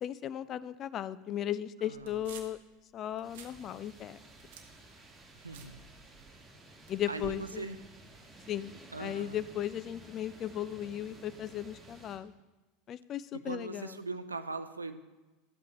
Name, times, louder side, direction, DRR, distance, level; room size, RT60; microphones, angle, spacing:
voice 1, 0.0-2.6 2.9-4.2 6.9-7.7 8.5-8.7 9.0-12.3 12.9-14.0, left 11 dB, 40° left, 16 dB, 0.4 m, -36 dB
voice 2, 1.8-2.2 5.4-5.8 7.1-7.8 8.9-9.4 13.3-15.0, right 3 dB, 90° right, 10 dB, 0.5 m, -40 dB
sound 1, 1.9-2.7 3.1-3.6 3.9-6.4 6.8-7.4, right 7 dB, 60° right, 1.0 m, -52 dB
sound 2, 3.2-12.2, right 2 dB, 15° right, 2.4 m, -54 dB
12.5 x 8.3 x 3.0 m, 1.2 s
figure-of-eight pair, 80°, 0 cm